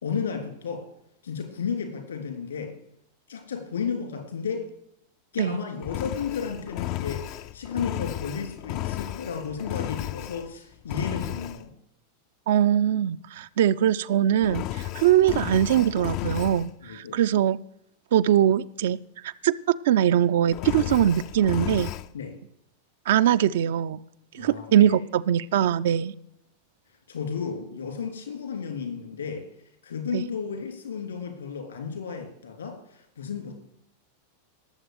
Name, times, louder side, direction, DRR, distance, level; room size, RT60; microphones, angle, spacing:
voice 1, 0.0-0.8 1.2-2.7 3.3-4.7 5.3-11.7 16.8-17.2 22.1-22.3 24.3-24.9 27.1-29.5 29.8-33.5, left 6 dB, 70° left, 3.3 m, -33 dB
Engine, 5.8-10.5 10.9-11.6 14.4-16.7 20.5-22.1, left 14 dB, 40° left, 0.5 m, -33 dB
voice 2, 12.5-17.6 18.1-21.9 23.1-24.0 24.3-26.1 30.1-30.2, right 10 dB, 55° right, 0.4 m, -22 dB
19.0 x 7.4 x 5.0 m
figure-of-eight pair, 90°, 0 cm